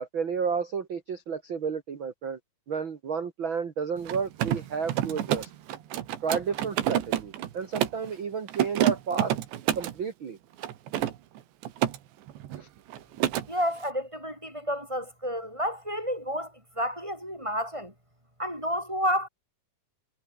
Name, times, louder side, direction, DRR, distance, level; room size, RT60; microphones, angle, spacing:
voice 1, 0.0-2.4 2.7-5.5 6.2-9.3 9.7-10.4 12.6-12.7, right 6 dB, 50° right, 1.5 m, -31 dB
Mechanisms, 4.0-8.1 8.5-10.0 10.6-12.0 12.3-12.6 12.9-13.5, right 12 dB, 85° right, 4.1 m, -28 dB
voice 2, 13.5-17.9 18.4-19.3, equal, 5° right, 7.8 m, -30 dB
omnidirectional pair, 4.9 m